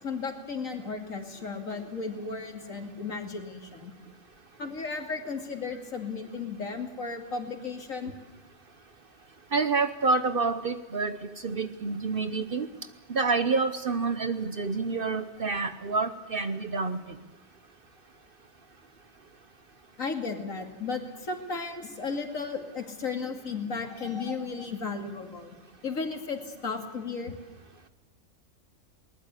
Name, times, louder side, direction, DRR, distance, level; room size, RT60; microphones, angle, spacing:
voice 1, 0.0-3.9 4.6-8.2 20.0-25.6 25.8-27.3, left 4 dB, 90° left, 4 dB, 2.9 m, -34 dB
voice 2, 9.5-11.2 11.4-12.7 13.1-17.0, right 4 dB, 50° right, 10 dB, 1.0 m, -28 dB
21.5 x 19.5 x 8.3 m, 1.2 s
omnidirectional pair, 1.3 m